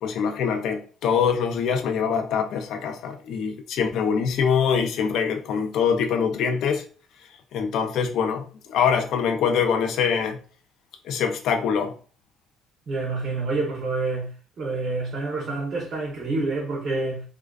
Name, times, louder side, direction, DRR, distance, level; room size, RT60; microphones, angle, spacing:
voice 1, 0.0-6.8 7.5-10.4 11.0-11.9, left 7 dB, 65° left, 0.4 m, -24 dB
voice 2, 12.9-14.3 14.6-17.2, right 3 dB, 40° right, 0.8 m, -27 dB
2.4 x 2.3 x 2.2 m
cardioid pair, 120°, 0 cm